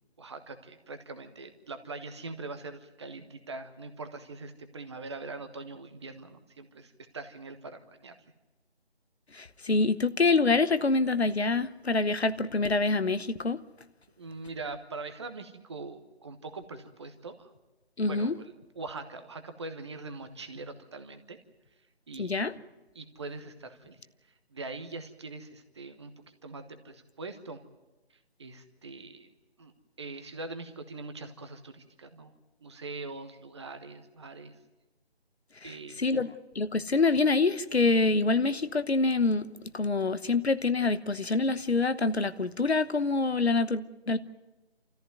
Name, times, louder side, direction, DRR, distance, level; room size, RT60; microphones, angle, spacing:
voice 1, 0.2-8.2 14.2-17.5 18.1-21.4 22.1-22.4 22.9-24.0 24.5-27.6 28.4-29.3 29.6-29.7 30.0-32.3 32.6-34.6 35.6-36.2, right 3 dB, 25° right, 8 dB, 1.2 m, -42 dB
voice 2, 9.3-13.6 18.0-18.3 22.2-22.5 35.6-39.5 39.7-44.2, left 3 dB, 75° left, 13 dB, 1.1 m, -26 dB
27.5 x 14.0 x 9.3 m, 1.1 s
figure-of-eight pair, 155°, 32 cm